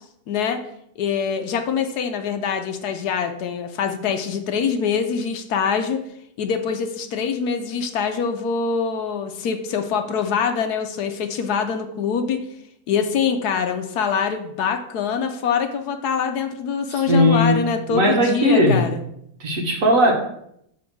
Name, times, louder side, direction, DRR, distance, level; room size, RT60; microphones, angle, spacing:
voice 1, 0.3-0.6 1.0-6.0 6.4-12.5 12.9-18.9, left 6 dB, 70° left, 6 dB, 1.1 m, -24 dB
voice 2, 16.9-17.6 17.9-18.8 19.4-20.1, equal, 55° right, 1 dB, 1.5 m, -17 dB
6.3 x 3.5 x 5.9 m, 0.75 s
omnidirectional pair, 1.8 m